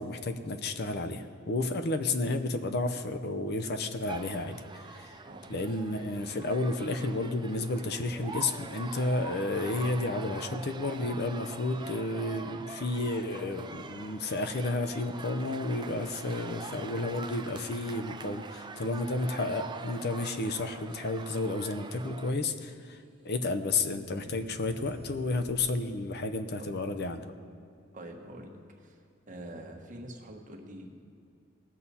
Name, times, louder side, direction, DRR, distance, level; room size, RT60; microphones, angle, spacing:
voice 1, 0.0-5.2 5.5-23.0 23.2-27.3, left 2 dB, 55° left, 9 dB, 0.7 m, -32 dB
sound 1, 4.1-22.3, right 4 dB, 20° right, 0.5 m, -44 dB
voice 2, 5.2-5.6 26.6-26.7 27.9-29.0 29.3-31.0, right 1 dB, 40° right, 2 dB, 1.3 m, -45 dB
sound 2, 22.9-25.7, equal, 5° right, 1.7 m, -50 dB
19.0 x 7.4 x 4.2 m, 2.3 s
head